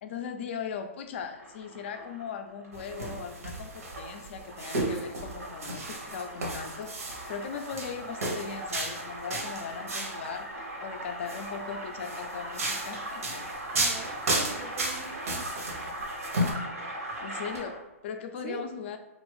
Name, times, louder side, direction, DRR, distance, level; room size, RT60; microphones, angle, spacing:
voice 1, 0.0-13.2 17.2-19.0, left 6 dB, 50° left, 6 dB, 0.4 m, -39 dB
sound 1, 1.2-17.9, right 1 dB, 85° right, 1.4 m, -40 dB
sound 2, 2.7-10.2 11.1-11.5 12.0-16.5, right 2 dB, 70° right, 0.8 m, -33 dB
voice 2, 13.7-15.5 18.4-18.6, right 5 dB, 30° right, 5 dB, 0.3 m, -43 dB
3.0 x 2.4 x 3.1 m, 1.1 s
hypercardioid pair, 140°, 8 cm